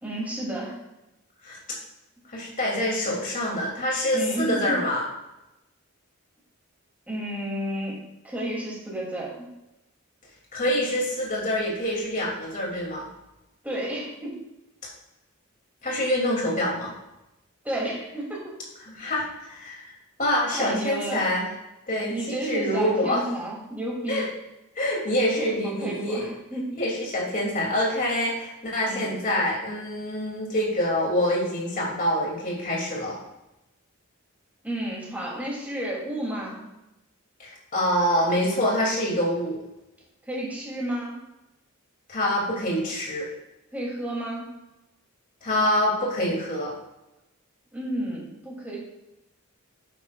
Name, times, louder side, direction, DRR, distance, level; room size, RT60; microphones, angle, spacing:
voice 1, 0.0-0.8 4.1-4.8 7.1-8.0 8.2-9.4 13.6-14.4 17.6-18.5 20.5-21.2 22.1-24.3 25.4-26.8 28.8-29.1 34.6-36.6 40.3-41.2 43.7-44.5 47.7-48.8, right 1 dB, 5° right, -5 dB, 3.0 m, -31 dB
voice 2, 2.3-5.0 10.5-13.1 15.8-16.9 18.8-19.9 20.2-21.5 21.9-23.2 24.1-24.3 24.8-26.3 26.8-33.2 37.4-39.6 42.1-43.3 45.4-46.7, left 1 dB, 40° left, -3 dB, 3.0 m, -26 dB
11.0 x 9.2 x 2.5 m, 0.92 s
head